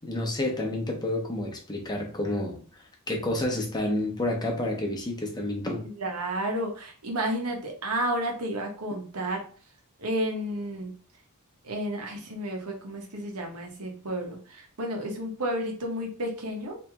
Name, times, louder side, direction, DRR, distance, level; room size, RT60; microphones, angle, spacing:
voice 1, 0.0-2.6 3.1-5.8, left 1 dB, 20° left, 0.8 m, -29 dB
voice 2, 5.8-9.4 10.0-10.9 11.6-16.8, right 1 dB, 90° right, 1.2 m, -31 dB
3.2 x 2.9 x 3.5 m
head